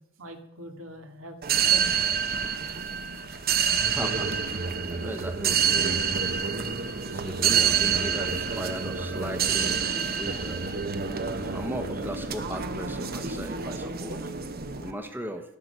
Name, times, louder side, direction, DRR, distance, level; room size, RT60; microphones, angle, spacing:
voice 1, 0.2-2.1 8.6-8.7 9.0-9.2 9.9-10.0 10.2-11.7 14.5-15.0, right 1 dB, 75° right, 5 dB, 2.1 m, -45 dB
sound 1, 1.4-14.9, right 6 dB, 45° right, 1.0 m, -27 dB
voice 2, 3.7-6.2 7.1-10.6 11.4-14.3 14.8-15.6, right 1 dB, 10° right, 7 dB, 1.0 m, -38 dB
12.5 x 10.5 x 6.8 m, 0.77 s
head